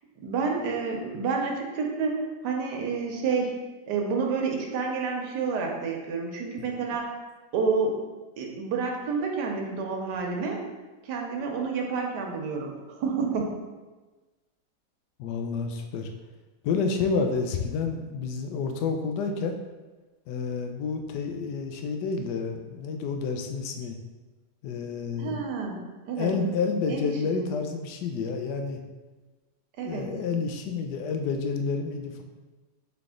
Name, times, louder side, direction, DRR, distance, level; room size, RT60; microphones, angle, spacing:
voice 1, 0.2-3.6 3.9-7.1 7.5-8.0 8.4-10.6 11.0-13.5 25.2-26.4 26.9-27.4 29.8-30.1, right 4 dB, 85° right, 1 dB, 1.3 m, -29 dB
voice 2, 15.2-16.1 16.6-19.5 20.3-24.0 24.6-25.4 26.2-28.8 29.8-32.2, left 5 dB, 85° left, 5 dB, 1.2 m, -29 dB
4.0 x 3.4 x 3.7 m, 1.2 s
omnidirectional pair, 1.8 m